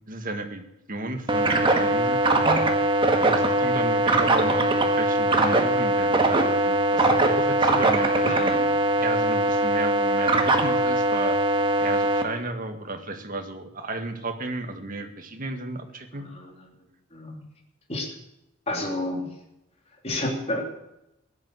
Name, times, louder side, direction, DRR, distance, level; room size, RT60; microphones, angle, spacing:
voice 1, 0.1-2.6 3.2-8.5 9.0-11.4 11.8-16.3, right 2 dB, 40° right, 6 dB, 1.8 m, -33 dB
sound 1, 1.3-12.2, right 1 dB, 25° right, 1.6 m, -21 dB
voice 2, 8.2-8.6 16.1-16.5 17.1-17.4 17.9-18.1 18.7-19.3 20.0-20.6, left 1 dB, 30° left, 0 dB, 3.4 m, -30 dB
16.0 x 11.0 x 7.8 m, 0.87 s
head